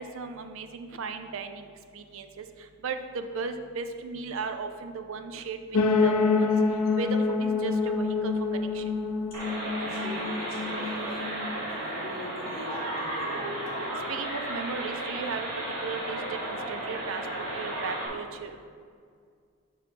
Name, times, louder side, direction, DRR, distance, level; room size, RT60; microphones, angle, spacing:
voice 1, 0.0-1.7 1.9-2.4 2.8-5.6 5.9-6.5 7.0-8.8 14.1-15.5 15.8-18.7, right 4 dB, 60° right, 8 dB, 0.4 m, -36 dB
sound 1, 5.7-11.6, left 4 dB, 75° left, 0.5 m, -27 dB
sound 2, 9.3-18.1, right 1 dB, 90° right, 1.5 m, -34 dB
voice 2, 9.8-13.5, equal, 40° left, -6 dB, 1.8 m, -43 dB
5.4 x 4.9 x 5.0 m, 2.1 s
head